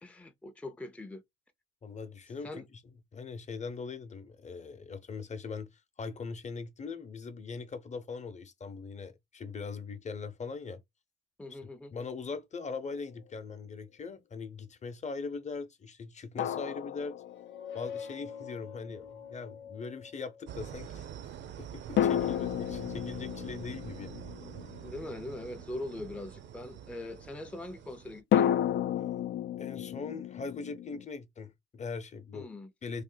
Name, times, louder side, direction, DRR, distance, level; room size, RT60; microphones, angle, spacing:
voice 1, 0.0-1.2 2.4-2.7 11.4-11.9 22.2-22.4 24.8-28.6 32.3-32.7, left 2 dB, 5° left, 0.5 m, -42 dB
voice 2, 1.8-2.6 3.1-10.8 11.5-11.6 11.9-17.2 17.7-21.0 21.6-24.1 29.6-32.5 32.8-33.0, left 4 dB, 35° left, 0.8 m, -41 dB
sound 1, 12.8-12.9 16.4-17.9 22.0-25.6 28.3-31.1, left 10 dB, 65° left, 0.4 m, -32 dB
sound 2, 17.3-20.8, left 7 dB, 80° left, 0.8 m, -45 dB
sound 3, 20.5-28.2, right 9 dB, 65° right, 0.6 m, -46 dB
3.2 x 2.5 x 3.8 m
cardioid pair, 90°, 20 cm